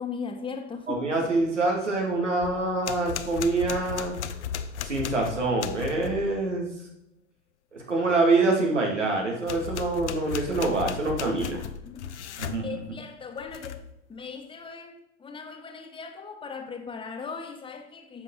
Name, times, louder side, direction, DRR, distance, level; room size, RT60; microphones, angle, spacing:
voice 1, 0.0-1.0 11.8-12.1 12.6-13.8 14.1-18.2, left 5 dB, 15° left, 1.3 m, -38 dB
voice 2, 0.9-4.2 4.8-6.7 7.7-11.6 12.4-12.8, right 3 dB, 90° right, 2.5 m, -25 dB
sound 1, 2.4-6.3 9.4-12.6 13.4-13.9, left 8 dB, 75° left, 0.8 m, -36 dB
10.5 x 6.7 x 3.9 m
hypercardioid pair, 95°, 35 cm